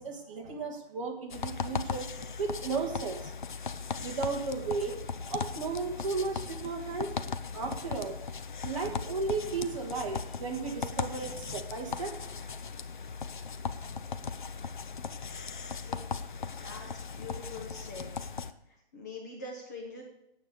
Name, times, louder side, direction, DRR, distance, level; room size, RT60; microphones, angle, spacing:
voice 1, 0.0-3.3 4.0-7.1 7.5-8.2 8.6-12.1, right 4 dB, 30° right, 1 dB, 1.8 m, -35 dB
sound 1, 1.3-18.5, left 5 dB, 45° left, 0.7 m, -38 dB
voice 2, 16.6-18.1 18.9-20.1, left 3 dB, 15° left, 0 dB, 1.1 m, -44 dB
9.2 x 8.0 x 8.0 m, 0.86 s
hypercardioid pair, 175°, 32 cm